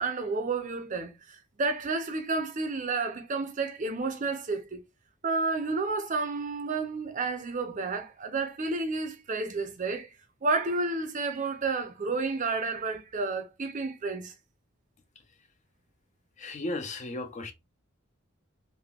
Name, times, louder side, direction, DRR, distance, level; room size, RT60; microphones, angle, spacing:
voice 1, 0.0-4.8 5.2-10.1 10.4-14.3, right 3 dB, 40° right, 0.5 m, -31 dB
voice 2, 16.4-17.5, left 2 dB, 35° left, 0.4 m, -35 dB
3.4 x 2.1 x 2.3 m
head